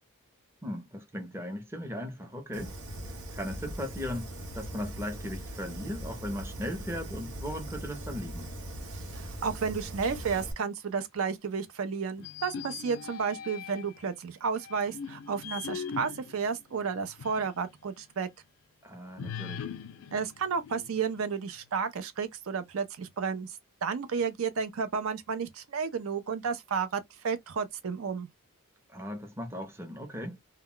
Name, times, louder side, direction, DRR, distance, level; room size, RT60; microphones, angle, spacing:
voice 1, 0.6-2.8 3.3-8.5 18.8-19.7 28.9-30.4, equal, 10° right, 0.5 m, -37 dB
Fire, 2.5-10.5, right 1 dB, 85° right, 0.8 m, -40 dB
voice 2, 9.1-18.3 20.1-28.3, right 6 dB, 65° right, 0.4 m, -32 dB
sound 1, 12.2-14.0 14.6-17.6 18.0-18.1 19.2-21.2, left 7 dB, 60° left, 0.4 m, -41 dB
2.2 x 2.1 x 3.6 m
head